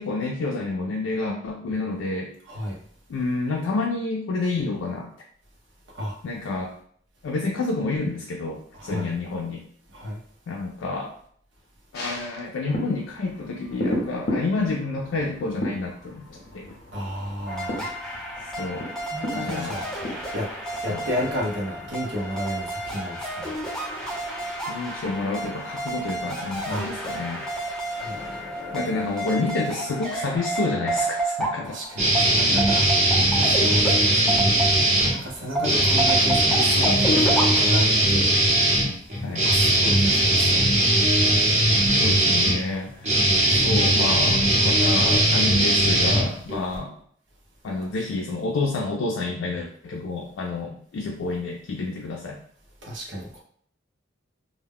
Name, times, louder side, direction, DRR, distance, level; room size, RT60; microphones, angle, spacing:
voice 1, 0.0-2.3 3.1-5.1 6.2-6.7 7.2-9.7 10.5-11.1 11.9-16.3 16.5-16.7 18.6-18.9 19.3-19.8 20.9-21.0 24.7-27.5 28.7-31.8 33.6-33.9 35.6-35.8 39.2-39.5 42.0-47.0 47.6-52.4, left 3 dB, 85° left, -1 dB, 0.4 m, -29 dB
voice 2, 2.4-2.8 5.9-6.2 8.7-9.1 9.9-10.2 16.9-17.9 19.1-19.9 20.3-20.5 20.8-23.5 26.7-26.9 27.9-29.0 31.6-32.9 33.3-34.4 35.0-38.5 39.4-40.7 46.2-46.4 52.8-53.4, equal, 70° right, -3 dB, 0.7 m, -32 dB
sound 1, 11.9-23.6 24.0-24.1, left 1 dB, 55° left, 0.7 m, -36 dB
sound 2, 17.5-35.1 35.6-37.4, right 1 dB, 5° left, 0.6 m, -30 dB
sound 3, 32.0-35.1 35.6-46.8, right 1 dB, 40° right, 0.8 m, -20 dB
2.1 x 2.1 x 3.5 m, 0.62 s
head